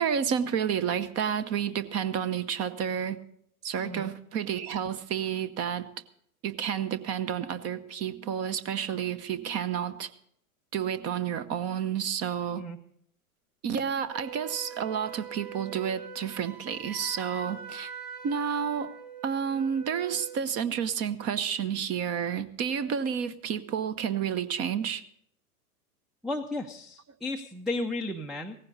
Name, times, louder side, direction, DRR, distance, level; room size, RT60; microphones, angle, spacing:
voice 1, 0.0-3.2 3.6-5.9 6.4-10.1 10.7-12.6 13.6-17.9 18.2-18.9 19.2-25.0, right 8 dB, 35° right, 0.9 m, -30 dB
Wind instrument woodwind instrument, 14.1-20.4, right 6 dB, 70° right, 3.4 m, -43 dB
voice 2, 26.2-28.6, left 2 dB, ahead, 0.5 m, -34 dB
17.0 x 15.0 x 4.0 m
hypercardioid pair, 95°, 45 cm